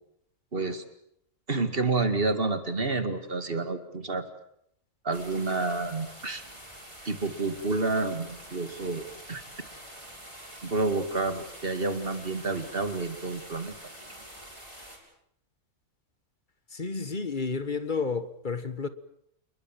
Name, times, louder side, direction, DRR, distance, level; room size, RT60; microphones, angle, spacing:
voice 1, 0.5-0.8 1.5-4.3 5.0-6.4 7.0-9.4 10.6-13.7, right 3 dB, 40° right, 2.4 m, -29 dB
sound 1, 5.1-15.0, right 1 dB, 20° right, 7.0 m, -46 dB
voice 2, 16.7-18.9, left 4 dB, 35° left, 1.4 m, -31 dB
28.5 x 22.0 x 7.6 m
omnidirectional pair, 1.5 m